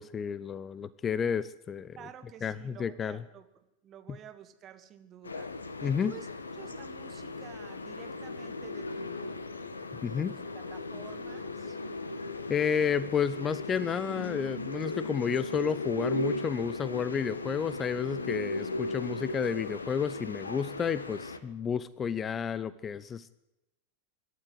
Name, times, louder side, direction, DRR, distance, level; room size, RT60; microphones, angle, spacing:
voice 1, 0.0-2.0 2.4-3.2 5.8-6.1 10.0-10.3 12.5-23.3, left 7 dB, 20° left, 18 dB, 0.7 m, -31 dB
voice 2, 2.0-6.3 6.6-9.4 10.1-11.8, right 10 dB, 30° right, 9 dB, 2.1 m, -50 dB
sound 1, 5.2-21.4, left 2 dB, 75° left, 1.5 m, -37 dB
25.5 x 12.5 x 8.0 m, 0.93 s
figure-of-eight pair, 90°, 0 cm